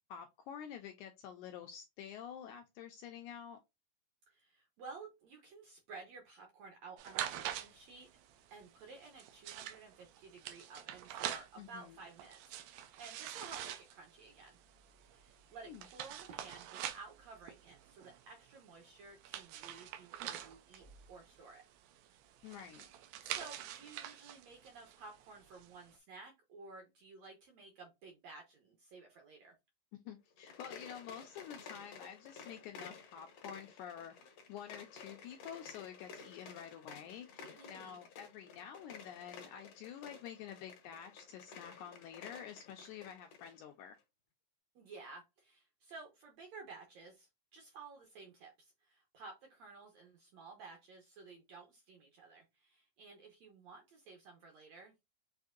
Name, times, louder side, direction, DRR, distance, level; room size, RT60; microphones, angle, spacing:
voice 1, 0.1-3.6 11.6-12.0 15.7-15.8 22.4-22.9 29.9-34.1 34.5-44.0, left 9 dB, 80° left, 1.8 m, -49 dB
voice 2, 4.3-8.2 8.5-14.6 15.0-21.6 23.2-29.5 37.5-38.0 44.7-55.1, right 4 dB, 70° right, 1.6 m, -54 dB
sound 1, 7.0-25.9, right 11 dB, 90° right, 2.4 m, -46 dB
sound 2, 30.3-43.6, left 5 dB, 65° left, 1.6 m, -53 dB
6.4 x 2.6 x 2.4 m
omnidirectional pair, 4.0 m